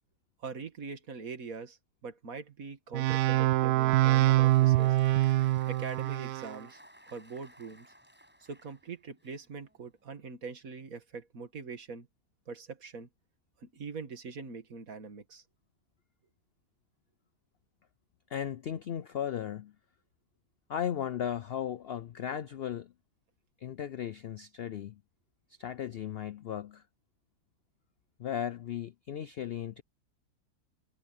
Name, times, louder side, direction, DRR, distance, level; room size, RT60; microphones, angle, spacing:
voice 1, 0.4-5.0 5.7-6.8 7.1-7.9 8.5-12.1 12.5-13.1 13.6-15.4, right 4 dB, 60° right, 2.4 m, -43 dB
sound 1, 2.9-6.5, right 16 dB, 80° right, 1.1 m, -25 dB
Applause, 3.8-10.1, equal, 5° right, 7.0 m, -58 dB
voice 2, 18.3-19.7 20.7-22.9 23.6-25.0 25.6-26.8 28.2-29.8, left 9 dB, 70° left, 0.5 m, -36 dB
omnidirectional pair, 1.7 m